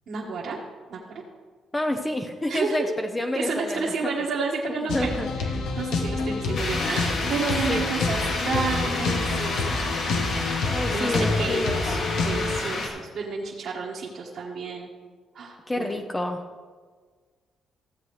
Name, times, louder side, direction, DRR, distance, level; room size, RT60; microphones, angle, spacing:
voice 1, 0.1-0.6 0.9-1.0 2.5-2.8 3.3-8.2 8.4-9.8 10.9-14.9 15.4-15.9, right 4 dB, 65° right, -5 dB, 1.6 m, -31 dB
voice 2, 1.7-4.1 4.9-5.3 7.7-7.9 10.7-11.8 15.7-16.4, left 1 dB, 15° left, 4 dB, 0.7 m, -28 dB
sound 1, 4.9-12.6, left 3 dB, 80° left, 1.3 m, -28 dB
sound 2, 6.5-12.9, left 2 dB, 65° left, 2.1 m, -30 dB
15.5 x 8.0 x 3.3 m, 1.5 s
cardioid pair, 90°, 0 cm